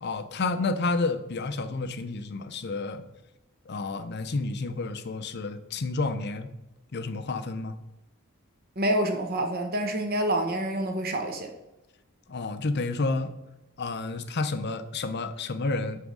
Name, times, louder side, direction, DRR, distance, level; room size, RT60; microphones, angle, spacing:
voice 1, 0.0-3.0 3.7-6.5 6.9-7.7 12.3-13.3 13.8-16.0, left 3 dB, 55° left, 10 dB, 0.6 m, -30 dB
voice 2, 8.8-11.5, right 1 dB, 50° right, 4 dB, 1.0 m, -27 dB
9.2 x 3.5 x 6.3 m, 0.98 s
head